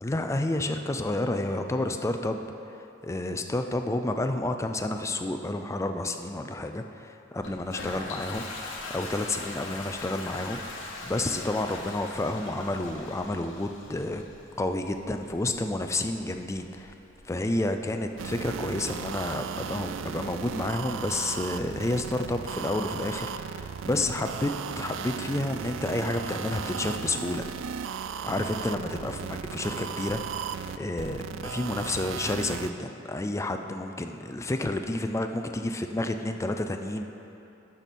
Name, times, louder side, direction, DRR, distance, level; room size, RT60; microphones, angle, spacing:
voice 1, 0.0-2.4 3.0-8.4 8.9-10.6 11.0-14.2 14.6-16.9 17.2-24.5 24.8-27.4 28.2-30.5 30.8-37.0, left 2 dB, 15° left, 6 dB, 0.4 m, -30 dB
Toilet flush, 7.4-19.0, left 2 dB, 75° left, 1.2 m, -42 dB
sound 1, 18.2-32.7, right 7 dB, 70° right, 0.3 m, -36 dB
12.0 x 5.2 x 4.3 m, 2.9 s
head